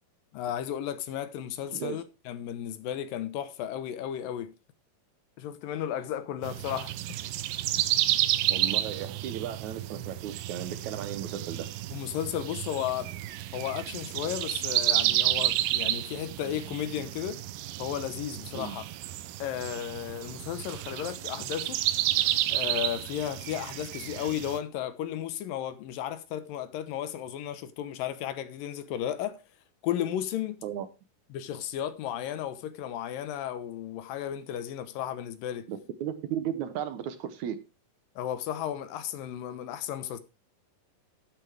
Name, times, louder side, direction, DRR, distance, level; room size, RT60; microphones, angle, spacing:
voice 1, 0.3-4.5 5.4-6.9 11.9-13.1 13.5-17.4 17.8-18.9 19.4-21.8 22.5-29.4 29.8-30.6 31.3-35.7 38.2-40.2, left 10 dB, 80° left, 2.7 m, -34 dB
voice 2, 1.7-2.0 8.5-11.7 18.5-18.8 30.6-30.9 35.7-37.6, right 9 dB, 70° right, 2.0 m, -35 dB
sound 1, 6.4-24.6, right 14 dB, 85° right, 2.4 m, -31 dB
11.5 x 9.6 x 3.3 m
omnidirectional pair, 4.0 m